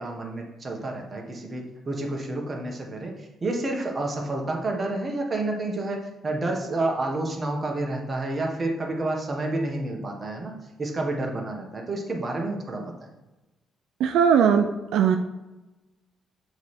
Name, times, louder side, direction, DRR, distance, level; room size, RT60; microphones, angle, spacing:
voice 1, 0.0-12.8, right 2 dB, 30° right, 1 dB, 1.3 m, -29 dB
voice 2, 14.0-15.2, right 7 dB, 85° right, 5 dB, 0.4 m, -19 dB
6.7 x 3.2 x 4.3 m, 1.0 s
cardioid pair, 90°, 0 cm